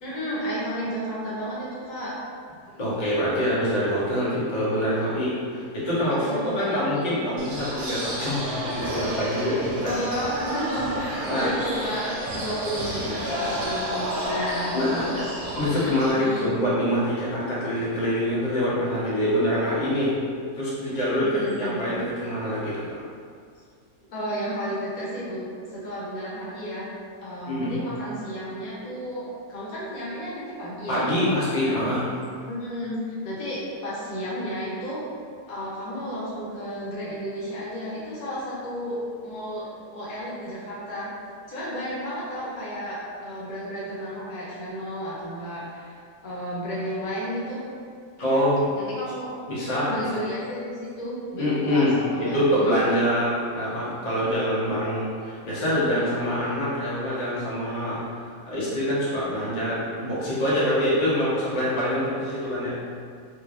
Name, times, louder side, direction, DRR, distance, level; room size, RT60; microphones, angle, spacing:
voice 1, 0.0-2.1 6.1-7.1 9.7-12.1 12.3-15.2 16.1-16.5 21.2-21.8 24.1-25.4 25.7-26.9 27.2-31.1 31.6-31.9 32.5-35.0 35.5-41.1 41.5-45.9 46.2-47.6 48.8-49.3 49.6-52.6 53.7-53.8, equal, 70° left, -8 dB, 1.2 m, -32 dB
voice 2, 2.8-9.9 11.3-11.5 14.7-15.1 15.5-20.1 20.5-22.9 27.5-27.8 30.9-32.1 48.2-48.7 49.5-49.9 51.4-58.2 58.5-62.7, equal, 35° left, -10 dB, 0.9 m, -25 dB
sound 1, 7.4-16.1, right 1 dB, 90° right, 0.4 m, -31 dB
3.1 x 3.0 x 2.5 m, 2.2 s
omnidirectional pair, 1.6 m